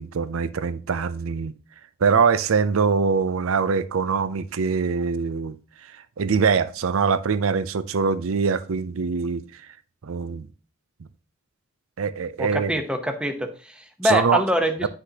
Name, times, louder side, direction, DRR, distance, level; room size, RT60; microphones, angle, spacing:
voice 1, 0.0-1.5 2.0-5.6 6.2-9.4 10.0-10.5 12.0-12.8 14.0-14.4 14.8-14.9, right 5 dB, 70° right, 0.5 m, -23 dB
voice 2, 12.4-14.9, equal, 5° right, 0.8 m, -24 dB
9.7 x 6.2 x 2.9 m
head